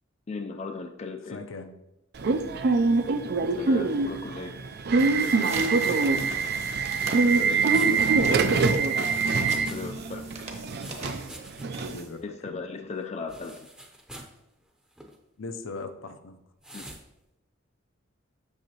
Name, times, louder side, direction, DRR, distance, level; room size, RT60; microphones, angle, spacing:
voice 1, 0.3-1.4 3.5-4.6 5.2-5.5 9.5-10.5 12.2-13.7 16.7-16.8, left 4 dB, 30° left, 5 dB, 0.4 m, -37 dB
voice 2, 1.3-1.7 7.2-8.1 11.8-12.6 15.4-16.4, left 3 dB, 70° left, 7 dB, 0.6 m, -39 dB
Subway metro underground / Alarm, 2.2-12.0, right 4 dB, 55° right, 0.4 m, -24 dB
sound 1, 4.8-12.4, right 3 dB, 35° right, 1.0 m, -40 dB
sound 2, 7.7-9.8 10.1-11.9 12.2-12.3 13.3-14.4 14.9-15.2 16.6-17.0, right 1 dB, 5° right, 0.7 m, -45 dB
7.9 x 6.5 x 2.9 m, 0.89 s
head